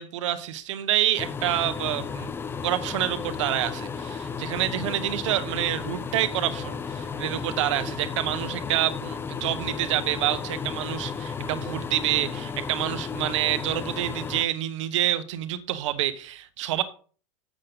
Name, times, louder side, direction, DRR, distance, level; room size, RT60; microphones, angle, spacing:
voice 1, 0.0-2.3 2.6-16.8, right 13 dB, 80° right, 1.2 m, -27 dB
Roomtone Bathroom With Vent, 1.2-14.4, left 6 dB, 15° left, 0.5 m, -34 dB
8.0 x 7.5 x 3.9 m
supercardioid pair, 135°, 16 cm